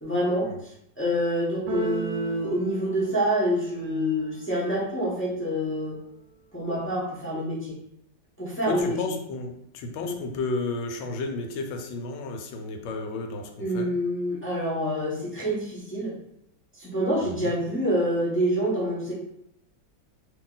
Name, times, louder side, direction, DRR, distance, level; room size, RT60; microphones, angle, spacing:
voice 1, 0.0-6.0 6.5-7.8 8.4-9.0 10.0-10.1 13.6-16.1 16.8-19.1, equal, 15° left, -8 dB, 0.5 m, -27 dB
Keyboard (musical), 1.7-3.8, right 4 dB, 85° right, 1.4 m, -36 dB
voice 2, 8.7-13.9 17.2-17.5, left 3 dB, 85° left, 5 dB, 1.4 m, -33 dB
2.9 x 2.8 x 3.8 m, 0.75 s
omnidirectional pair, 2.1 m